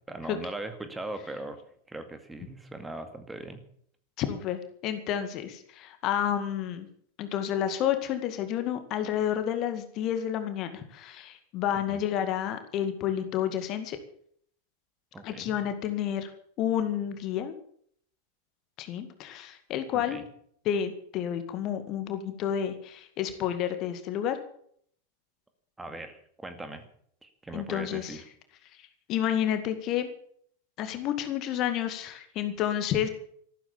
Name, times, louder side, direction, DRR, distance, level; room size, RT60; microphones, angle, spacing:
voice 1, 0.1-1.6 1.9-3.6 11.9-12.0 15.1-15.6 20.1-20.2 25.8-26.8 27.2-28.2, right 2 dB, 10° right, 8 dB, 2.2 m, -39 dB
voice 2, 4.2-6.9 7.2-14.0 15.2-16.3 16.6-17.5 18.8-20.2 20.7-24.4 27.5-28.2 29.1-30.1 30.8-33.1, left 10 dB, 35° left, 9 dB, 2.1 m, -30 dB
14.5 x 13.0 x 7.2 m, 0.62 s
figure-of-eight pair, 90°, 0 cm